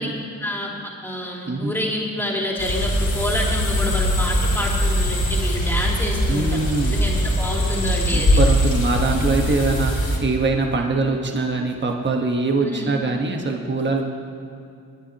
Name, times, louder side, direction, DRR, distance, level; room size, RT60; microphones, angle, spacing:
voice 1, 0.0-8.4 12.6-12.9, equal, 5° left, -3 dB, 3.1 m, -28 dB
sound 1, 2.6-10.2, equal, 55° left, 2.7 m, -21 dB
voice 2, 6.3-7.0 8.1-14.0, right 3 dB, 30° right, 2 dB, 1.4 m, -23 dB
21.5 x 9.9 x 3.0 m, 2.5 s
cardioid pair, 60°, 37 cm